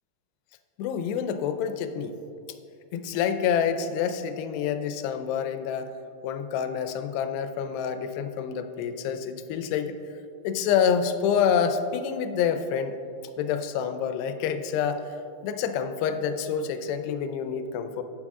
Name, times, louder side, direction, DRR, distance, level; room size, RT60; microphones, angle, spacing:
voice 1, 0.8-2.2 2.9-5.9 6.2-9.9 10.4-13.0 13.4-15.1 15.4-18.0, left 7 dB, 85° left, 9 dB, 2.5 m, -27 dB
16.0 x 5.7 x 3.6 m, 2.6 s
omnidirectional pair, 5.0 m